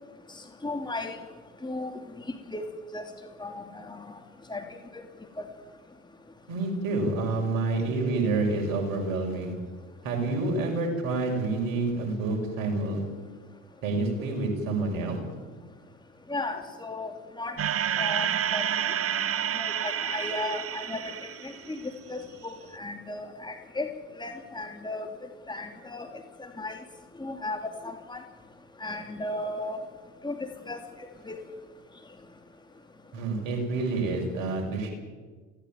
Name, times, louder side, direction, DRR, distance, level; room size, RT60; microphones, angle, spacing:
voice 1, 0.6-1.2 1.6-1.9 2.5-2.6 2.9-3.0 3.4-4.0 4.5-4.6 16.3-17.5 18.0-18.6 19.5-21.1 21.4-21.8 22.1-23.9 24.2-25.1 25.5-26.1 26.4-26.8 27.2-28.2 28.8-29.8 30.2-30.3 30.7-30.8 31.3-31.4, left 2 dB, 10° left, 4 dB, 2.9 m, -35 dB
voice 2, 6.5-9.5 10.0-13.0 13.8-15.2 33.1-34.9, right 3 dB, 60° right, 2 dB, 6.5 m, -28 dB
sound 1, 17.6-22.0, right 10 dB, 35° right, 1.1 m, -29 dB
23.5 x 17.0 x 9.3 m, 1.4 s
figure-of-eight pair, 60°, 38 cm